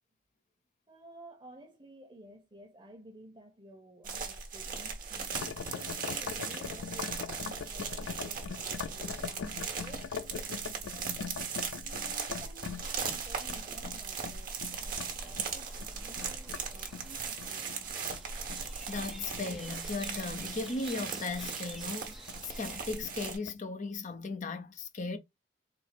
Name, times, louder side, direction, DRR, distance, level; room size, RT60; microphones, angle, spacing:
voice 1, 0.9-11.1 11.8-18.0, right 1 dB, 25° right, 1.0 m, -54 dB
sound 1, 4.0-23.4, right 5 dB, 50° right, 1.3 m, -38 dB
sound 2, 5.3-16.6 16.9-20.3 20.6-21.1 21.4-21.6 21.9-22.0 22.3-23.2 23.5-23.6, left 6 dB, 90° left, 0.4 m, -42 dB
sound 3, 14.7-22.9, equal, ahead, 0.6 m, -52 dB
voice 2, 18.9-25.2, left 3 dB, 40° left, 0.6 m, -37 dB
4.3 x 2.0 x 4.2 m
head